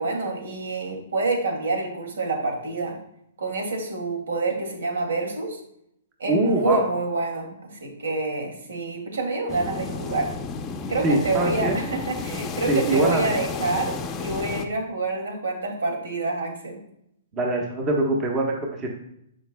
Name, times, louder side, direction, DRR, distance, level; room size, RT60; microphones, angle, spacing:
voice 1, 0.0-3.0 3.4-5.6 6.2-10.3 10.9-16.8, right 3 dB, 85° right, 2 dB, 2.4 m, -27 dB
voice 2, 6.3-6.8 11.0-11.8 12.6-13.4 17.3-18.9, right 2 dB, 25° right, 0 dB, 1.3 m, -23 dB
sound 1, 9.5-14.7, left 5 dB, 20° left, 0.7 m, -32 dB
13.5 x 5.3 x 2.3 m, 0.75 s
hypercardioid pair, 150°, 0 cm